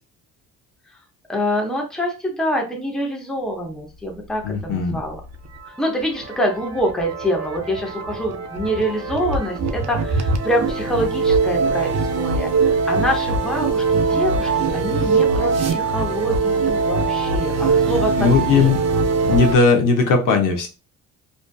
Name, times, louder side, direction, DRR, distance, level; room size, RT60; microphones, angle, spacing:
voice 1, 1.3-5.2 5.8-18.7, equal, ahead, 0 dB, 0.6 m, -25 dB
voice 2, 4.4-5.0 18.2-18.8 19.2-20.7, left 4 dB, 65° left, 4 dB, 0.7 m, -17 dB
sound 1, 5.1-19.5, right 4 dB, 50° right, 0.5 m, -22 dB
2.6 x 2.4 x 2.2 m, 0.31 s
cardioid pair, 105°, 34 cm